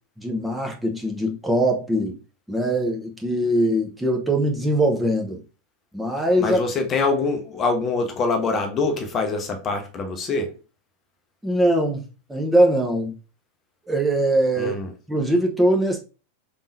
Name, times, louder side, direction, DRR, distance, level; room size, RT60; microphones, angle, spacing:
voice 1, 0.2-2.2 2.5-5.4 5.9-6.6 11.4-12.0 12.3-13.1 13.9-14.7 15.1-16.0, right 1 dB, 5° right, 0.8 m, -21 dB
voice 2, 6.4-10.5 14.6-14.9, left 3 dB, 25° left, 0.8 m, -24 dB
4.4 x 3.6 x 2.6 m
figure-of-eight pair, 90°, 0 cm